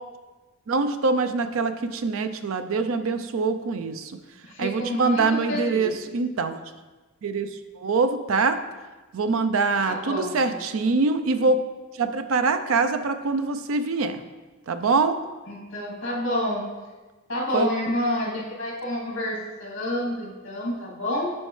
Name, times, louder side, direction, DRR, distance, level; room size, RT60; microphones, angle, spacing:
voice 1, 0.7-4.1 4.6-6.6 7.2-7.5 7.8-8.6 9.1-11.6 12.0-14.2 14.7-15.2 17.5-17.7, right 4 dB, 85° right, 10 dB, 0.5 m, -24 dB
voice 2, 4.4-5.9 9.8-10.6 15.5-16.6 17.3-21.3, left 1 dB, 65° left, -5 dB, 2.4 m, -29 dB
10.5 x 4.4 x 3.2 m, 1.2 s
head